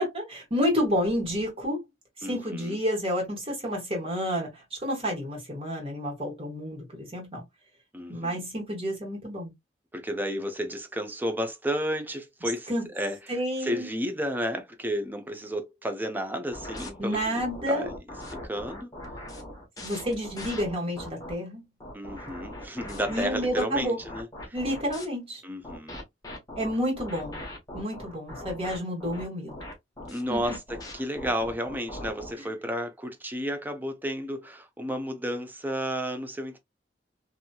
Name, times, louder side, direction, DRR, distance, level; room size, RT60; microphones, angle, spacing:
voice 1, 0.0-1.8 2.2-7.4 8.1-9.5 12.7-12.9 13.3-13.9 17.0-17.9 19.8-21.6 23.1-24.0 24.5-25.4 26.5-27.4 27.7-29.6 30.3-30.5 32.4-32.5, equal, 35° right, 1.5 m, -30 dB
voice 2, 2.2-2.8 7.9-8.4 9.9-12.7 12.9-13.2 13.6-17.9 18.3-18.9 21.9-24.5 25.4-26.0 30.1-36.6, equal, 10° right, 0.5 m, -32 dB
sound 1, 16.5-21.3 21.8-25.1 25.6-32.3, left 1 dB, 20° left, 0.9 m, -40 dB
2.8 x 2.7 x 2.2 m
head